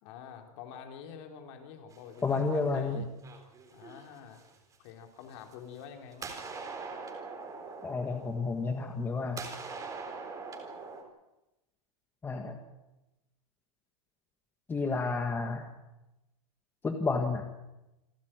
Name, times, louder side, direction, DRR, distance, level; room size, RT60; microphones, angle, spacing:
voice 1, 0.0-3.1 3.7-4.4 4.8-6.4, left 7 dB, 45° left, 4 dB, 3.7 m, -47 dB
sound 1, 1.9-2.8 3.2-4.8 5.4-5.8 6.1-9.1 9.4-11.0, right 4 dB, 15° right, 3.9 m, -43 dB
voice 2, 2.2-3.0 7.8-9.4 12.2-12.6 14.7-15.7 16.8-17.5, left 4 dB, 10° left, 4 dB, 1.6 m, -31 dB
28.0 x 13.0 x 9.0 m, 0.98 s
hypercardioid pair, 145°, 20 cm